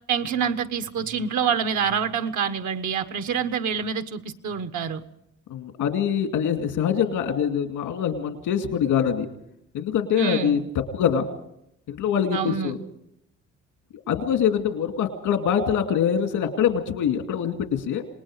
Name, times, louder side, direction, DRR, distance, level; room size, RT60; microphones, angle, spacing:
voice 1, 0.1-5.0 10.2-10.6 12.3-12.8, right 7 dB, 75° right, 9 dB, 1.2 m, -26 dB
voice 2, 5.5-9.3 9.7-10.6 10.9-11.3 11.9-12.8 14.1-18.0, left 8 dB, 90° left, 5 dB, 2.4 m, -24 dB
27.5 x 19.5 x 4.9 m, 0.77 s
cardioid pair, 90°, 30 cm